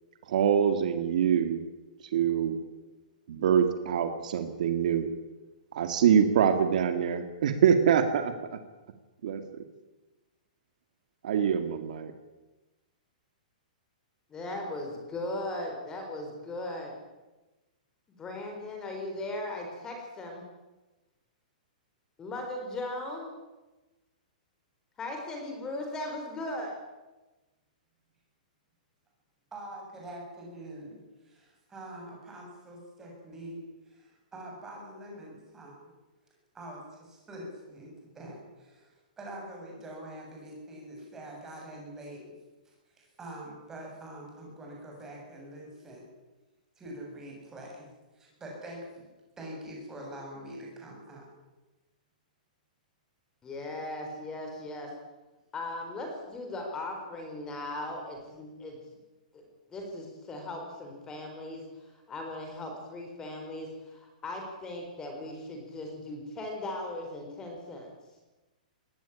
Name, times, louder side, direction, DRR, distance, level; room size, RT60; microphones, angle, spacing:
voice 1, 0.3-1.6 2.1-2.6 3.3-5.1 5.7-8.6 9.2-9.4 11.2-12.1, right 8 dB, 60° right, 8 dB, 2.2 m, -25 dB
voice 2, 14.3-16.9 18.1-20.4 22.2-23.3 25.0-26.7 53.4-54.9 55.5-58.8 59.3-59.4 59.7-61.6 62.1-67.9, left 2 dB, 15° left, 3 dB, 4.2 m, -38 dB
voice 3, 29.5-33.6 33.9-35.8 36.5-42.2 43.0-46.1 46.8-47.9 48.1-49.1 49.4-51.3, right 1 dB, 10° right, -1 dB, 7.9 m, -44 dB
20.5 x 17.5 x 10.0 m, 1.1 s
hypercardioid pair, 165°, 5 cm